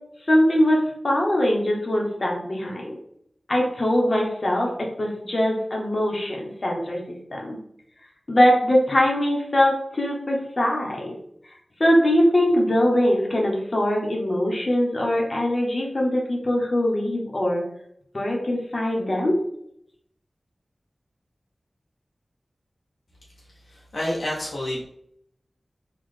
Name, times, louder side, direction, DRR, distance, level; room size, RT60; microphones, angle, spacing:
voice 1, 0.3-3.0 3.5-7.0 7.3-7.6 8.3-11.2 11.8-17.6 18.1-19.4, left 1 dB, 45° left, -1 dB, 1.0 m, -22 dB
voice 2, 23.7-24.8, left 1 dB, 70° left, -5 dB, 0.7 m, -28 dB
3.9 x 2.4 x 3.3 m, 0.73 s
wide cardioid pair, 65°, 0 cm